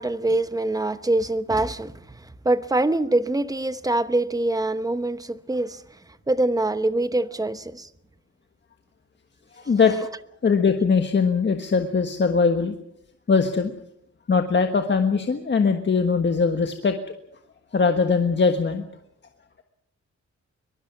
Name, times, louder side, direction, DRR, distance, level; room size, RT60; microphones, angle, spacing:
voice 1, 0.0-1.9 2.2-5.8 6.3-7.9, right 2 dB, 10° right, 0.9 m, -24 dB
voice 2, 9.6-10.0 10.4-12.7 13.3-13.7 14.3-17.0 17.7-18.8, left 5 dB, 40° left, 1.5 m, -21 dB
23.0 x 22.0 x 6.0 m
wide cardioid pair, 160°, 29 cm